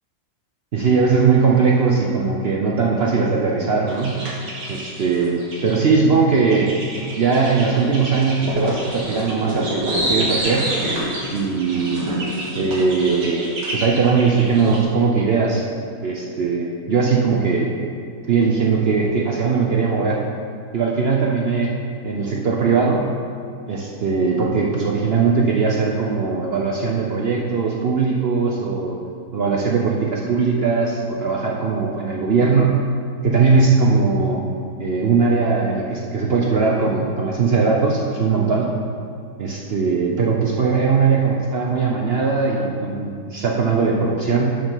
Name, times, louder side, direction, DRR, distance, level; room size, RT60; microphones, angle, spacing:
voice 1, 0.7-4.2 4.7-6.8 7.0-10.7 11.3-12.0 12.6-15.6 16.0-17.7 18.3-20.3 20.7-21.8 22.0-23.1 23.7-29.0 29.3-32.8 33.2-34.5 34.8-38.7 39.4-44.6, right 4 dB, 65° right, -1 dB, 0.6 m, -19 dB
sound 1, 3.9-5.8 6.3-14.8, right 1 dB, 90° right, 2.3 m, -27 dB
12.0 x 4.9 x 3.8 m, 2.2 s
omnidirectional pair, 1.8 m